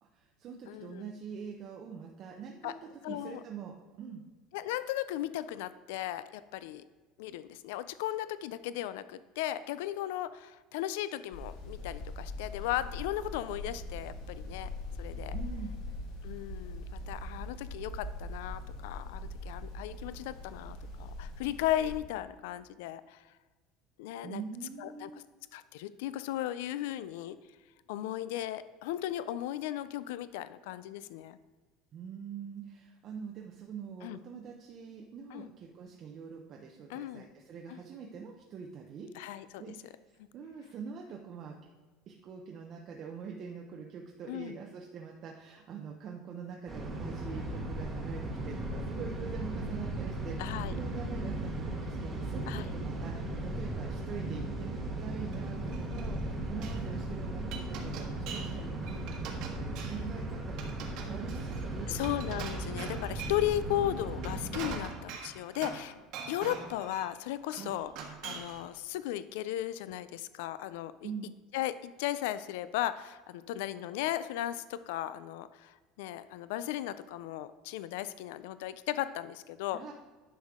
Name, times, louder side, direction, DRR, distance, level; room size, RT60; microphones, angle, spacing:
voice 1, 0.0-4.2 15.3-15.7 24.2-25.2 31.9-41.6 42.1-60.6 61.0-62.0 67.6-67.7 71.0-71.3 79.7-79.9, right 6 dB, 30° right, 1 dB, 0.6 m, -44 dB
voice 2, 0.7-1.1 2.6-2.7 3.0-3.4 4.5-6.8 7.2-14.7 15.0-15.4 16.2-23.2 24.0-24.4 24.8-25.1 25.5-27.4 27.9-31.4 34.0-34.2 35.3-35.5 36.9-37.2 37.7-37.8 39.1-39.6 44.3-44.6 50.4-50.7 52.5-52.7 59.8-59.9 61.9-66.0 66.3-67.9 68.2-71.1 71.5-79.8, left 13 dB, 75° left, 14 dB, 0.3 m, -36 dB
sound 1, 11.3-22.0, left 2 dB, 55° left, 1.8 m, -41 dB
sound 2, 46.7-64.8, right 2 dB, 10° right, 1.1 m, -37 dB
Glass, 55.3-56.2 56.5-56.8 57.2-58.6 58.8-60.1 60.5-63.5 64.1-65.9 66.1-67.1 67.5-68.6, right 6 dB, 45° right, 1.2 m, -44 dB
10.0 x 6.3 x 3.6 m, 1.3 s
cardioid pair, 180°, 0 cm